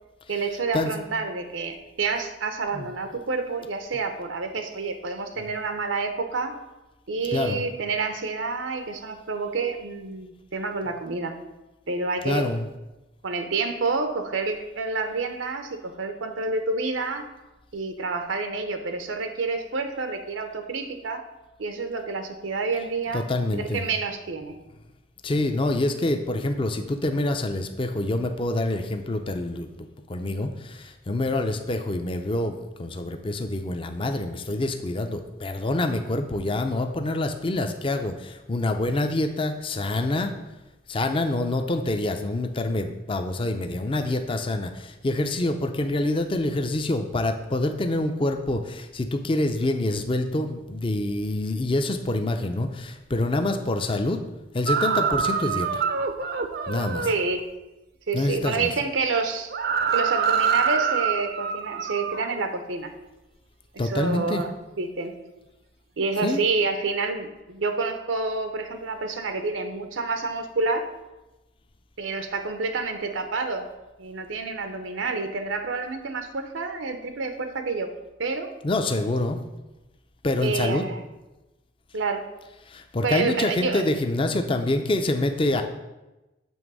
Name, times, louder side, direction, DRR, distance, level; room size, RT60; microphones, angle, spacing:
voice 1, 0.3-6.6 7.1-11.4 11.9-12.5 13.2-17.2 17.7-21.2 21.6-23.3 23.5-24.6 57.0-57.5 58.1-59.5 59.9-62.9 63.7-64.5 64.8-65.1 66.0-70.9 72.0-73.7 74.0-77.9 78.2-78.5 80.4-81.0 81.9-82.3 83.0-83.8, right 4 dB, 90° right, 7 dB, 0.7 m, -28 dB
voice 2, 7.3-7.6 12.2-12.7 23.1-23.8 25.2-29.7 30.1-40.3 40.9-54.2 54.5-55.8 56.7-57.1 58.1-58.7 63.8-64.4 66.2-66.5 78.6-79.4 80.2-80.8 82.7-85.6, left 2 dB, 30° left, 6 dB, 0.5 m, -26 dB
sound 1, 54.7-57.2 59.5-62.4, right 6 dB, 55° right, 0.5 m, -25 dB
7.1 x 3.4 x 6.1 m, 1.0 s
head